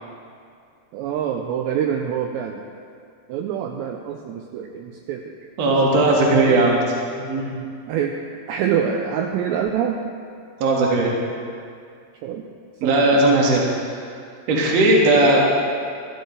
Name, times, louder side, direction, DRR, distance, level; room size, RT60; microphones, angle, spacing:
voice 1, 0.9-2.6 3.3-5.3 5.7-6.6 7.9-8.2 8.5-10.0 12.2-12.4 12.8-13.2, right 8 dB, 85° right, 3 dB, 2.5 m, -26 dB
voice 2, 5.6-6.8 7.2-7.5 10.6-11.2 12.8-14.0 14.5-15.4, right 2 dB, 60° right, -2 dB, 1.9 m, -17 dB
13.5 x 13.0 x 3.2 m, 2.3 s
omnidirectional pair, 5.4 m